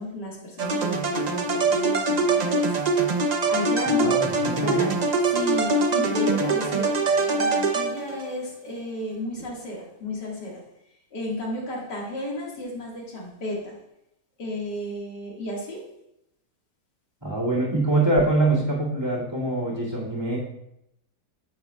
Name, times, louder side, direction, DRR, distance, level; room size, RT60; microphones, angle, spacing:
voice 1, 0.0-2.8 3.5-4.2 4.6-5.0 5.3-10.6 11.1-13.8 14.4-15.8, left 1 dB, 80° left, -3 dB, 2.5 m, -33 dB
sound 1, 0.6-8.3, right 3 dB, 80° right, 0.3 m, -23 dB
voice 2, 3.9-4.9 17.2-20.4, right 2 dB, 15° right, -6 dB, 2.2 m, -24 dB
9.6 x 8.1 x 2.3 m, 0.82 s
omnidirectional pair, 1.8 m